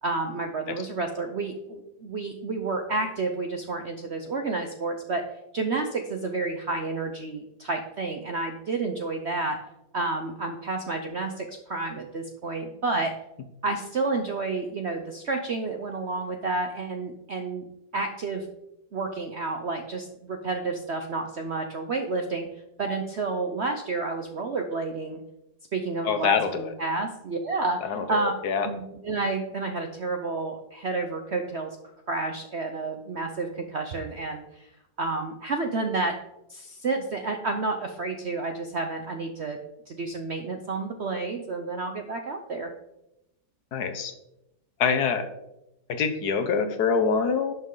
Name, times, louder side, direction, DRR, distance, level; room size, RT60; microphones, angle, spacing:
voice 1, 0.0-5.2 5.5-9.6 9.9-13.1 13.6-17.6 17.9-18.5 18.9-22.5 22.8-25.2 25.7-28.3 28.6-31.8 32.1-34.7 35.0-36.1 36.5-39.6 39.9-42.7, right 3 dB, 60° right, 4 dB, 0.7 m, -30 dB
voice 2, 26.0-26.7 27.8-28.7 43.7-44.1 44.8-45.3 45.9-47.5, left 6 dB, 65° left, 8 dB, 1.3 m, -25 dB
11.0 x 6.3 x 3.8 m, 0.88 s
omnidirectional pair, 2.0 m